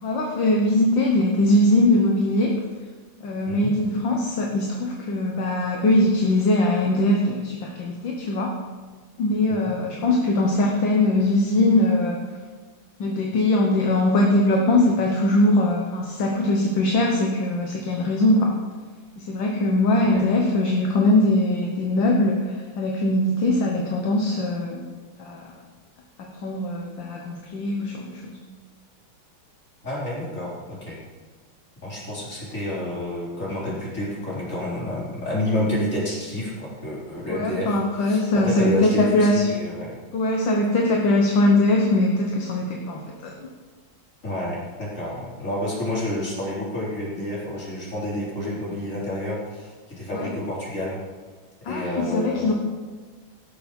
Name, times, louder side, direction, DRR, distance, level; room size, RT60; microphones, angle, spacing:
voice 1, 0.0-2.5 3.2-8.5 9.2-12.2 13.0-18.5 19.3-24.9 25.2-25.5 26.2-28.4 37.3-39.5 40.1-43.4 50.1-50.3 51.7-52.5, left 1 dB, 70° left, 0 dB, 1.9 m, -21 dB
voice 2, 29.8-31.0 31.8-39.9 44.2-51.0 51.7-52.5, left 1 dB, 40° left, -7 dB, 4.8 m, -29 dB
18.0 x 6.9 x 5.3 m, 1.4 s
omnidirectional pair, 2.2 m